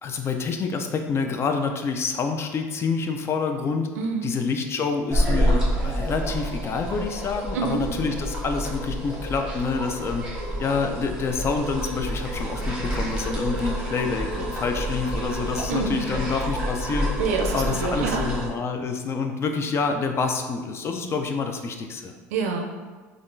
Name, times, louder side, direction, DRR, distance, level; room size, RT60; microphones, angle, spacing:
voice 1, 0.0-3.9 4.2-10.2 10.6-17.1 17.5-22.1, left 4 dB, 35° left, 5 dB, 0.4 m, -27 dB
voice 2, 4.0-4.3 7.5-7.8 15.7-16.0 17.2-18.3 22.3-22.7, right 4 dB, 85° right, 3 dB, 0.4 m, -26 dB
sound 1, 5.1-18.5, equal, 10° right, 1.0 m, -28 dB
3.5 x 2.4 x 2.6 m, 1.4 s
supercardioid pair, 90°, 8 cm